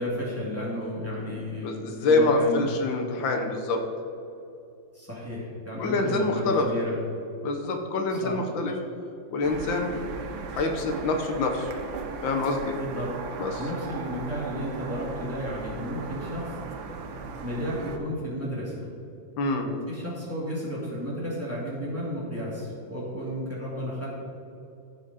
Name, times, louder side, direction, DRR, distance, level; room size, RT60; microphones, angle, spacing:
voice 1, 0.0-2.7 4.9-7.0 8.1-8.4 12.8-13.1 13.6-16.6 17.4-18.9 19.7-24.1, equal, 5° right, -6 dB, 2.3 m, -33 dB
voice 2, 1.3-3.8 5.8-6.7 7.4-8.7 9.3-9.9 10.5-11.7 12.2-12.8 13.4-13.5 19.4-19.7, left 3 dB, 80° left, 4 dB, 1.7 m, -26 dB
sound 1, 9.4-18.0, right 4 dB, 85° right, 1.6 m, -37 dB
14.5 x 5.0 x 4.1 m, 2.8 s
omnidirectional pair, 2.1 m